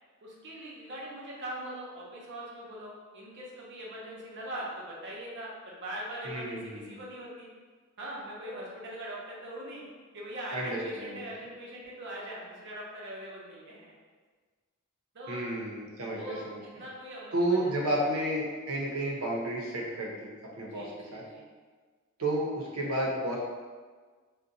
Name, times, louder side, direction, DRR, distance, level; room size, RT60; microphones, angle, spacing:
voice 1, 0.2-7.5 8.0-9.9 10.1-13.9 15.1-15.4 16.1-16.4 16.7-18.0 20.6-21.5, right 1 dB, 55° right, -4 dB, 0.7 m, -41 dB
voice 2, 6.2-7.0 10.5-11.2 15.3-16.6 17.3-20.8 21.1-21.2 22.2-23.4, right 1 dB, 85° right, -3 dB, 0.7 m, -31 dB
2.5 x 2.2 x 3.9 m, 1.4 s
head